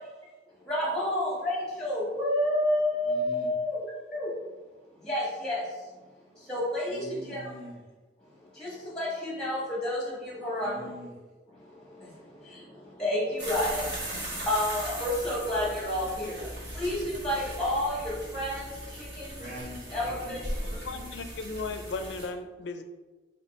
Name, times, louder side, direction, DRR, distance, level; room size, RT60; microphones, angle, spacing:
voice 1, 0.7-3.8 4.1-4.3 5.1-5.6 6.5-7.0 7.3-7.4 9.0-10.0 10.3-10.7 13.0-13.8 14.5-16.3 16.8-18.0 18.3-18.6 19.2-19.3 19.9-20.4, left 1 dB, 5° left, -5 dB, 1.2 m, -29 dB
voice 2, 3.1-3.5 6.9-7.8 10.6-11.1 19.4-21.1, equal, 55° right, -6 dB, 1.3 m, -44 dB
sound 1, 13.4-22.3, right 1 dB, 70° right, 1.2 m, -38 dB
voice 3, 20.6-22.8, left 3 dB, 75° left, 8 dB, 0.4 m, -36 dB
3.4 x 2.8 x 4.1 m, 1.2 s
head